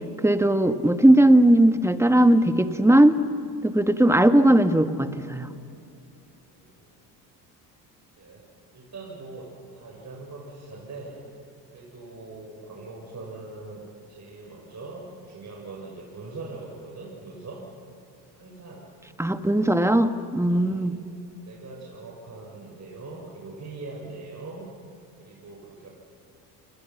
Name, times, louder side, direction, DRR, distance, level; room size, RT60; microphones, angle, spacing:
voice 1, 0.2-3.2 3.6-5.5 19.2-20.9, right 1 dB, 5° right, 8 dB, 1.7 m, -18 dB
voice 2, 6.4-6.9 8.2-8.4 8.7-11.3 11.7-17.6 18.4-18.9 19.6-19.8 20.5-21.1 21.4-24.7 25.2-25.9, right 3 dB, 35° right, -3 dB, 7.3 m, -42 dB
28.0 x 26.0 x 5.9 m, 2.6 s
hypercardioid pair, 60°, 49 cm